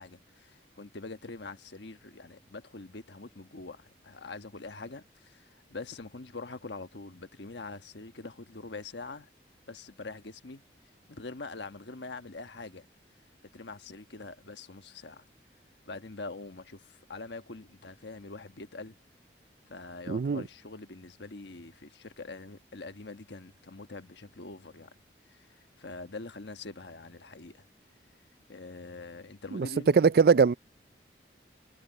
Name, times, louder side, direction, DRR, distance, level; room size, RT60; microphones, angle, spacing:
voice 1, 0.0-9.3 9.7-10.6 11.1-12.9 13.5-15.3 15.9-19.0 19.7-25.0 25.3-27.7 28.5-30.0, left 3 dB, 80° left, 1.3 m, -44 dB
voice 2, 20.1-20.4 29.5-29.7 29.9-30.5, right 5 dB, 55° right, 0.4 m, -21 dB
head